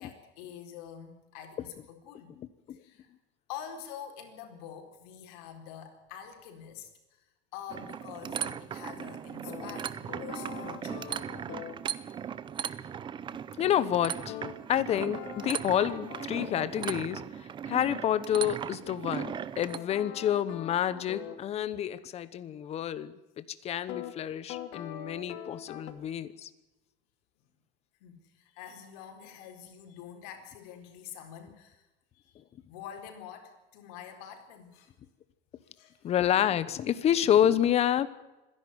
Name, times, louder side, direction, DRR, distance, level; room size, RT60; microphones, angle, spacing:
voice 1, 0.0-2.3 2.7-3.1 3.5-7.2 7.5-11.2 28.0-31.9 32.1-32.4 32.7-35.0 35.8-36.1, left 9 dB, 85° left, 5 dB, 4.2 m, -46 dB
voice 2, 2.4-2.8 13.6-14.4 14.7-17.2 17.6-26.5 36.0-38.1, left 10 dB, 35° left, 15 dB, 1.1 m, -28 dB
sound 1, 7.7-19.8, right 8 dB, 25° right, 0.7 m, -38 dB
sound 2, 9.5-11.8 14.3-16.7 19.1-21.4 23.9-24.1 24.5-25.9, left 10 dB, 60° left, 2.6 m, -42 dB
26.0 x 11.0 x 9.6 m, 1.0 s
cardioid pair, 160°, 19 cm